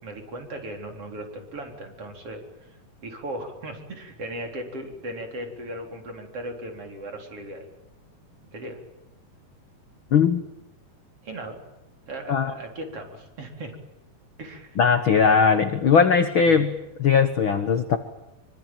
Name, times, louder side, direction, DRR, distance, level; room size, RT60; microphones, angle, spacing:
voice 1, 0.0-2.7 3.0-7.7 8.5-8.8 11.2-11.6 12.1-13.7 14.4-14.8 16.4-16.6, right 1 dB, 40° right, 3 dB, 4.9 m, -37 dB
voice 2, 10.1-10.4 12.3-12.5 14.8-16.7 17.0-18.0, left 6 dB, 60° left, 9 dB, 1.3 m, -19 dB
25.5 x 24.5 x 9.1 m, 0.95 s
omnidirectional pair, 4.1 m